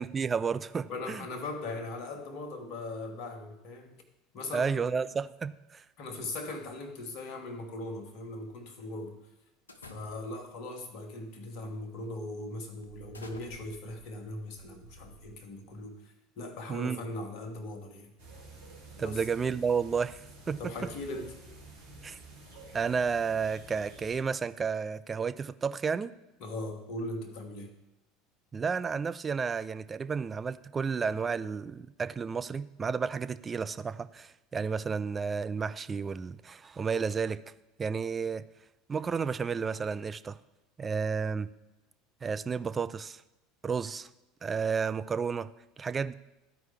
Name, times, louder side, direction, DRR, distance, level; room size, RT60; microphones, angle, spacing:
voice 1, 0.0-1.3 4.5-5.8 16.7-17.0 19.0-20.2 20.5-20.6 22.0-22.2 22.7-26.1 28.5-37.4 37.8-38.4 38.9-40.4 40.8-41.5 42.2-43.2 43.6-44.1 44.4-45.5 45.8-46.1, right 5 dB, 25° right, 12 dB, 0.3 m, -31 dB
voice 2, 0.9-4.0 4.3-4.9 6.0-9.2 9.9-18.1 19.0-19.2 20.6-21.4 26.4-27.7, left 2 dB, 50° left, 6 dB, 1.2 m, -39 dB
sound 1, 9.7-10.5 11.3-11.6 12.0-12.2 12.8-15.7, left 1 dB, 80° left, 0.5 m, -52 dB
sound 2, 18.2-24.2, right 2 dB, 75° right, 2.0 m, -50 dB
13.5 x 4.6 x 3.3 m, 0.97 s
figure-of-eight pair, 70°, 0 cm